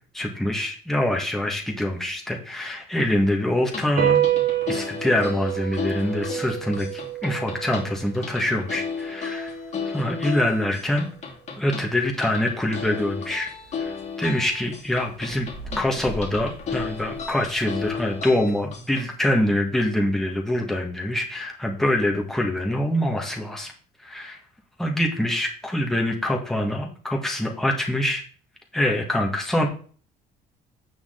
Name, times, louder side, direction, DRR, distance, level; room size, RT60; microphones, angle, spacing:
voice 1, 0.1-4.2 4.7-9.5 9.9-11.1 11.6-13.5 13.8-15.5 15.8-23.7 24.0-24.4 24.8-28.2 28.7-29.7, left 1 dB, ahead, 0 dB, 1.8 m, -25 dB
sound 1, 3.6-19.0, left 5 dB, 40° left, 2.4 m, -34 dB
sound 2, 4.0-10.7, right 12 dB, 70° right, 1.4 m, -28 dB
sound 3, 12.7-18.0, right 1 dB, 15° right, 2.1 m, -42 dB
8.8 x 6.4 x 3.9 m, 0.43 s
cardioid pair, 110°, 17 cm